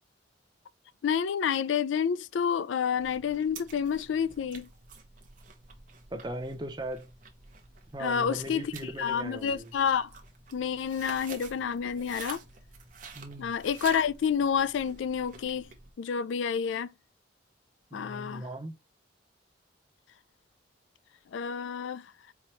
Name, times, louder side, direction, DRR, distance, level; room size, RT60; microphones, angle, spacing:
voice 1, 1.0-4.7 8.0-8.7 9.0-10.1 10.5-12.4 13.4-15.7 16.0-16.9 17.9-18.5 21.3-22.1, left 7 dB, 80° left, 0.3 m, -29 dB
sound 1, 3.0-15.9, right 5 dB, 45° right, 0.8 m, -49 dB
voice 2, 6.1-7.1 7.9-9.7 13.1-13.5 17.9-18.7, right 1 dB, 20° right, 0.5 m, -38 dB
4.5 x 2.8 x 3.1 m
head